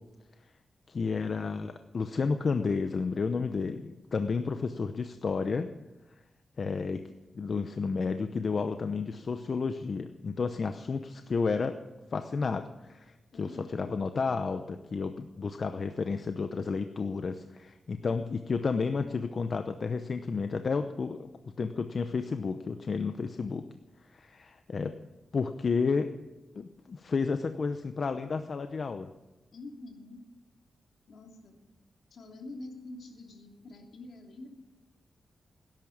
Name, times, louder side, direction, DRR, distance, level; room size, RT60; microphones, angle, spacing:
voice 1, 0.9-5.7 6.6-7.0 7.3-11.8 12.1-21.3 21.6-23.6 24.1-24.9 25.3-26.1 26.6-29.1, left 4 dB, 45° left, 8 dB, 0.7 m, -31 dB
voice 2, 13.3-14.0 29.5-30.2 31.1-31.6 32.1-34.5, left 2 dB, 70° left, 2 dB, 3.0 m, -46 dB
17.5 x 11.0 x 7.2 m, 1.0 s
wide cardioid pair, 120°, 0 cm